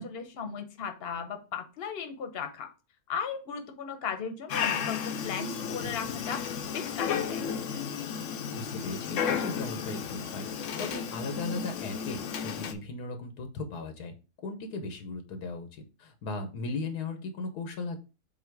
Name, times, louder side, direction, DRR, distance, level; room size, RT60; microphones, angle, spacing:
voice 1, 0.0-2.7 3.1-6.5 6.7-7.5, left 6 dB, 45° left, 7 dB, 1.0 m, -36 dB
Dog, 4.5-12.7, left 7 dB, 60° left, 0.9 m, -33 dB
voice 2, 8.5-10.4 10.8-14.1 14.4-18.0, left 3 dB, 90° left, 6 dB, 1.5 m, -37 dB
7.4 x 2.8 x 4.7 m, 0.31 s
omnidirectional pair, 1.6 m